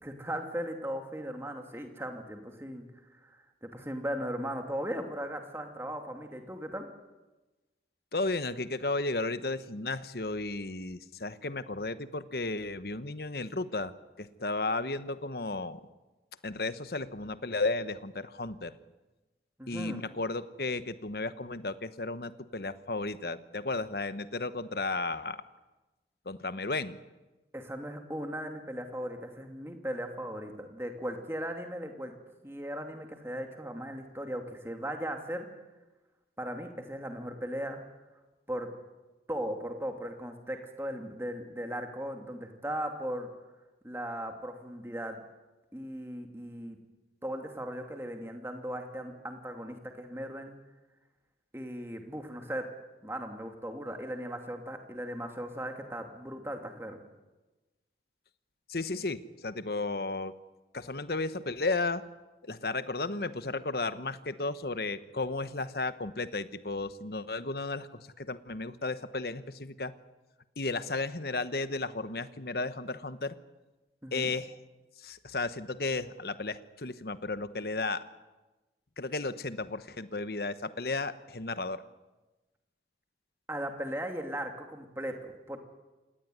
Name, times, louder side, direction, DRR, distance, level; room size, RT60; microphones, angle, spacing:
voice 1, 0.0-2.9 3.1-6.9 19.6-20.0 27.5-32.1 32.4-35.5 36.4-37.8 38.5-38.7 39.3-43.3 43.8-45.2 45.7-46.8 47.2-50.6 51.5-52.6 53.0-57.0 74.0-74.3 83.5-85.6, equal, 15° right, 4 dB, 2.6 m, -37 dB
voice 2, 8.1-13.9 14.2-15.8 16.4-18.7 19.7-25.4 26.3-27.0 58.7-60.3 60.7-62.0 62.4-69.9 70.6-73.3 74.1-74.5 75.0-78.0 79.0-81.8, left 3 dB, 55° left, 13 dB, 1.1 m, -34 dB
27.5 x 18.0 x 9.5 m, 1.2 s
head